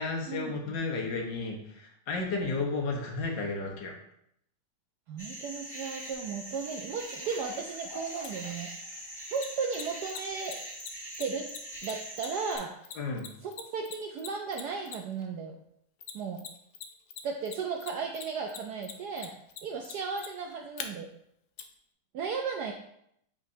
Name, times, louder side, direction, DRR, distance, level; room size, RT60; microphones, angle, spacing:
voice 1, 0.0-3.9 13.0-13.3, left 3 dB, 60° left, 0 dB, 1.7 m, -33 dB
voice 2, 5.1-8.7 9.3-10.6 11.2-11.5 11.8-12.8 13.4-15.6 16.1-16.5 17.2-19.3 19.6-21.1 22.1-22.7, right 5 dB, 85° right, 2 dB, 0.8 m, -35 dB
sound 1, 5.2-12.6, equal, 15° left, 1.4 m, -42 dB
sound 2, 6.1-6.2 6.5-6.6 7.0-10.6 11.0-11.1 11.7-11.8, left 2 dB, 35° left, 1.6 m, -50 dB
Mechanisms, 8.2-8.3 9.4-15.2 16.0-16.8 17.1-20.9 21.6-21.7, left 8 dB, 75° left, 1.4 m, -41 dB
8.7 x 4.0 x 2.7 m, 0.74 s
omnidirectional pair, 2.3 m